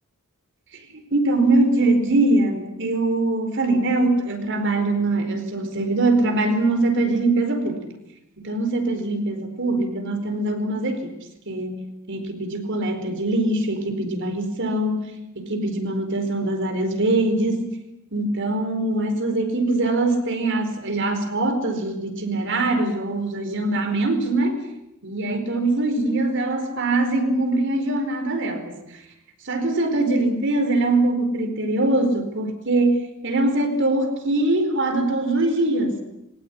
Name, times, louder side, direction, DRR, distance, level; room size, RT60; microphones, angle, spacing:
voice 1, 0.7-7.9 8.4-11.1 11.5-15.1 15.4-17.7 18.1-24.6 25.0-29.0 29.4-36.0, right 2 dB, 55° right, 6 dB, 4.6 m, -22 dB
22.5 x 18.5 x 10.0 m, 0.86 s
head